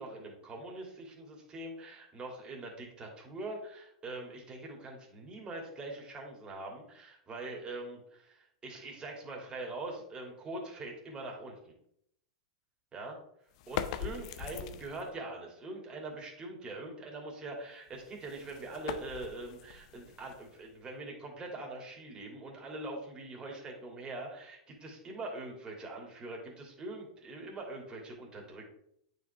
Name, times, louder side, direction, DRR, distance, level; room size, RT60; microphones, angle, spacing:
voice 1, 0.0-11.7 12.9-13.2 13.7-28.7, right 2 dB, 25° right, 0 dB, 2.7 m, -43 dB
sound 1, 13.5-15.2 17.9-20.8, left 10 dB, 60° left, 0.6 m, -41 dB
9.0 x 5.2 x 3.5 m, 0.72 s
hypercardioid pair, 105°, 4 cm